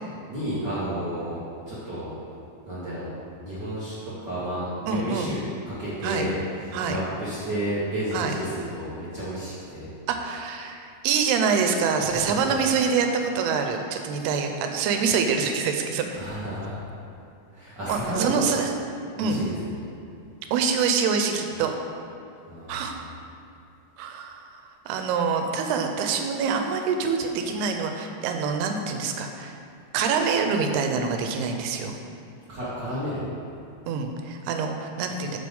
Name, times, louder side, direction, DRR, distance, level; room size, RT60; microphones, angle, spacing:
voice 1, 0.3-1.4 1.7-2.1 2.6-3.1 3.4-9.9 12.0-12.5 16.1-16.8 17.5-18.5 19.1-19.8 22.5-23.0 32.5-33.2, right 1 dB, 65° right, -10 dB, 1.1 m, -31 dB
voice 2, 4.9-5.4 6.0-6.3 6.7-7.0 8.1-8.3 10.1-16.0 17.9-18.7 19.2-19.4 20.5-21.7 22.7-23.0 24.0-24.5 24.9-29.6 29.9-32.0 33.9-35.4, right 5 dB, 85° right, 4 dB, 2.7 m, -25 dB
7.7 x 5.9 x 5.4 m, 2.6 s
omnidirectional pair, 4.5 m